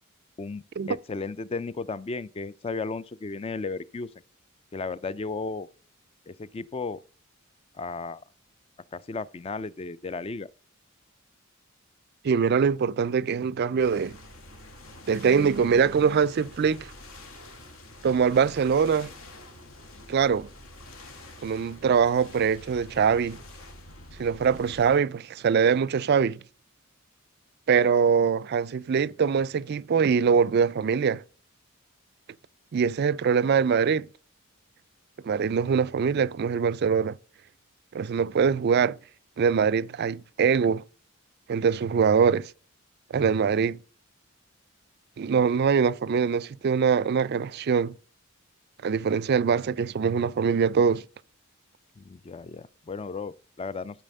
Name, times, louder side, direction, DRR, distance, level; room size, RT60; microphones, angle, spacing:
voice 1, 0.4-4.1 4.7-5.7 6.3-7.0 7.7-8.2 8.9-10.5 52.0-54.0, left 4 dB, 25° left, 0.3 m, -34 dB
voice 2, 12.2-14.2 15.1-16.9 18.0-19.1 20.1-20.5 21.4-23.4 24.2-26.4 27.7-31.2 32.7-34.1 35.2-37.2 37.9-39.0 39.4-40.8 41.5-42.5 43.1-43.8 45.2-47.9 48.8-51.0, right 6 dB, 50° right, 0.3 m, -23 dB
sound 1, 13.8-25.0, left 1 dB, 70° left, 1.7 m, -47 dB
12.5 x 4.2 x 5.3 m
head